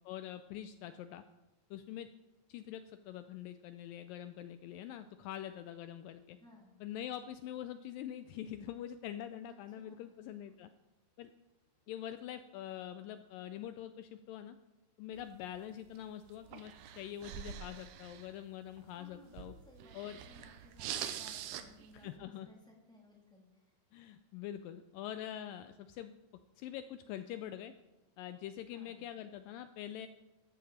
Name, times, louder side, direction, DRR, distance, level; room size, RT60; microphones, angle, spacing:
voice 1, 0.1-1.2 1.7-2.1 2.5-6.4 6.8-10.7 11.2-11.3 11.9-14.6 15.0-19.5 19.9-20.2 22.0-22.5 23.9-26.1 26.6-27.7 28.2-30.1, left 11 dB, 90° left, 10 dB, 1.9 m, -44 dB
voice 2, 6.4-6.8 9.5-10.1 18.9-20.0 20.3-23.8 28.7-29.0, left 1 dB, ahead, -3 dB, 2.3 m, -60 dB
sound 1, 15.2-22.2, right 10 dB, 85° right, 2.9 m, -46 dB
14.5 x 12.5 x 4.3 m, 1.0 s
omnidirectional pair, 4.6 m